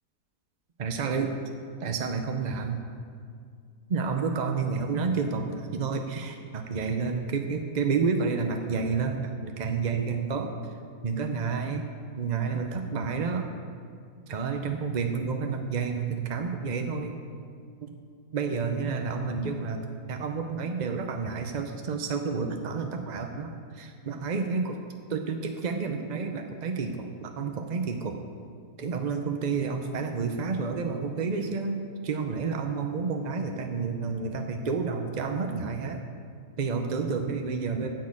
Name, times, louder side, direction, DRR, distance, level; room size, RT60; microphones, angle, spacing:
voice 1, 0.8-1.4 1.8-2.8 3.9-10.5 11.0-11.9 12.2-13.5 14.3-17.1 17.8-17.9 18.3-24.8 25.1-28.2 28.8-36.0 36.6-37.9, right 5 dB, 50° right, 4 dB, 0.5 m, -30 dB
10.0 x 6.5 x 8.6 m, 2.2 s
omnidirectional pair, 1.7 m